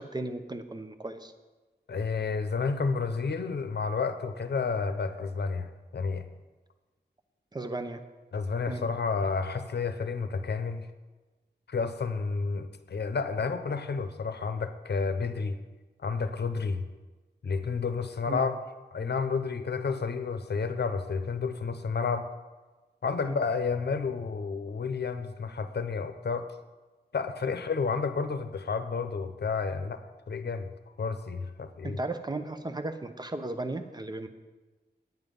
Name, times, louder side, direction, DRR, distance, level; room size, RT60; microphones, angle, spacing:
voice 1, 0.0-1.3 7.5-8.0 8.7-8.8 18.3-18.4 23.2-23.4 31.8-34.3, right 2 dB, 25° right, 8 dB, 0.8 m, -35 dB
voice 2, 1.9-6.2 8.3-10.9 11.7-15.6 16.0-16.8 17.4-18.6 18.9-22.3 23.0-26.5 27.1-30.7 31.0-32.0, left 5 dB, 70° left, 9 dB, 0.8 m, -31 dB
9.5 x 9.4 x 5.3 m, 1.2 s
wide cardioid pair, 90°, 18 cm